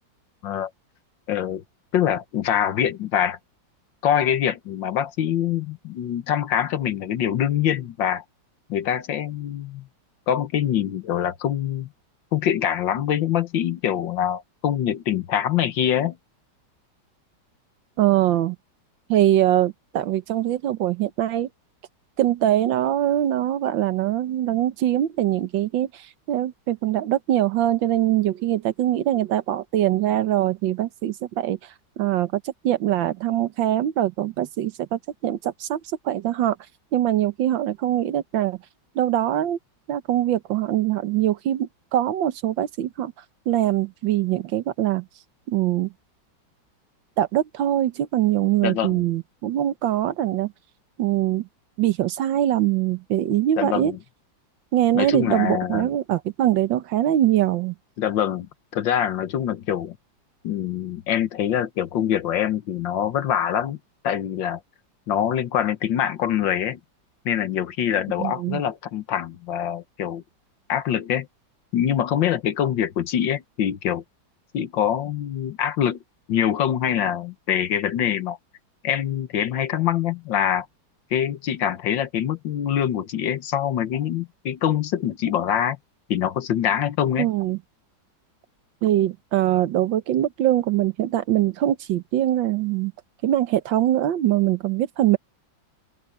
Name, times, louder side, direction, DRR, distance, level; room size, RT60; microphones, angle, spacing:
voice 1, 1.3-1.6 1.9-3.4 4.0-8.2 8.7-9.9 10.3-11.9 12.3-16.2 48.6-49.1 53.6-54.0 54.9-55.9 58.0-58.5 58.7-60.0 60.4-63.8 64.0-64.6 65.1-66.8 67.2-70.2 70.7-71.3 71.7-74.0 74.5-76.0 76.3-78.4 78.8-80.7 81.1-85.8 86.1-87.3, left 10 dB, 80° left, 1.7 m, -24 dB
voice 2, 18.0-18.6 19.1-21.5 22.2-25.9 26.3-31.6 32.0-35.8 36.0-36.6 36.9-38.6 38.9-39.6 39.9-43.1 43.5-45.0 45.5-45.9 47.2-50.5 51.0-51.4 51.8-53.9 54.7-57.7 68.2-68.6 87.2-87.6 88.8-92.9 93.2-95.2, right 12 dB, 80° right, 1.7 m, -22 dB
open air
omnidirectional pair, 2.0 m